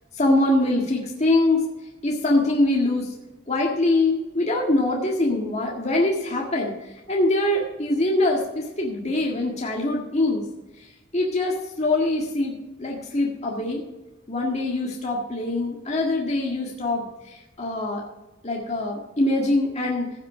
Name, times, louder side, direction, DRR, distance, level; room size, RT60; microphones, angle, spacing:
voice 1, 0.1-1.6 2.0-3.1 3.5-10.4 10.8-13.8 14.3-18.0 18.4-20.1, left 2 dB, 35° left, -2 dB, 1.8 m, -23 dB
16.0 x 6.0 x 5.5 m, 1.1 s
head